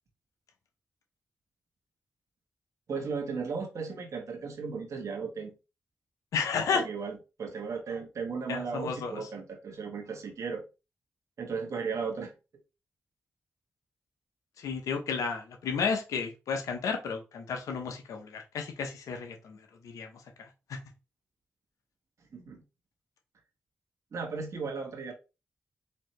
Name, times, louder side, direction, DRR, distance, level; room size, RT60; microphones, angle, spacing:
voice 1, 2.9-5.5 6.7-10.6 11.4-12.3 22.3-22.6 24.1-25.1, right 5 dB, 65° right, 1.2 m, -36 dB
voice 2, 6.3-6.8 8.5-9.3 14.6-19.6 19.8-20.1 20.7-20.8, left 5 dB, 85° left, 0.8 m, -32 dB
4.3 x 2.7 x 3.1 m
cardioid pair, 50°, 5 cm